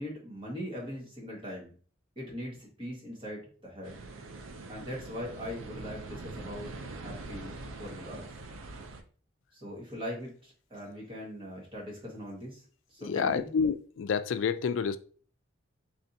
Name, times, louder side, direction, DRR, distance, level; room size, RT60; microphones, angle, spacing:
voice 1, 0.0-1.7 2.1-3.9 4.7-6.7 7.0-7.5 7.8-8.3 9.6-12.6 12.9-13.5, equal, 25° right, 1.4 m, -40 dB
sound 1, 3.8-9.0, right 3 dB, 85° right, 0.5 m, -43 dB
voice 2, 13.0-15.0, left 6 dB, 70° left, 0.3 m, -29 dB
4.1 x 3.3 x 2.6 m
head